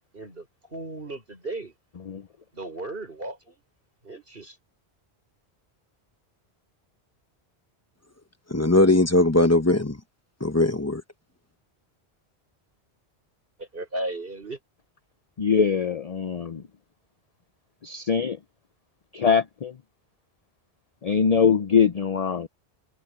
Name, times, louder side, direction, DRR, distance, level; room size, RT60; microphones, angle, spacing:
voice 1, 0.1-1.7 2.5-3.6 4.0-4.6 13.6-14.6, right 2 dB, 55° right, 5.9 m, -35 dB
voice 2, 8.5-10.0 10.4-11.0, left 2 dB, 15° left, 1.0 m, -20 dB
voice 3, 15.4-16.6 17.8-18.4 19.1-19.8 21.0-22.5, left 6 dB, 40° left, 0.6 m, -22 dB
omnidirectional pair, 1.1 m